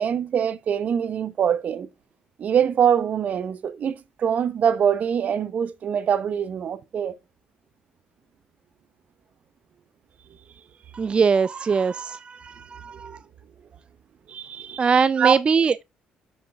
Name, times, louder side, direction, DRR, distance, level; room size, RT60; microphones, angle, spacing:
voice 1, 0.0-1.9 2.4-7.1 13.0-13.2 14.3-14.8 15.2-15.3, right 8 dB, 55° right, 0.8 m, -24 dB
voice 2, 10.9-13.1 14.8-15.8, right 5 dB, 35° right, 0.3 m, -22 dB
7.5 x 6.5 x 3.4 m
hypercardioid pair, 60°, 3 cm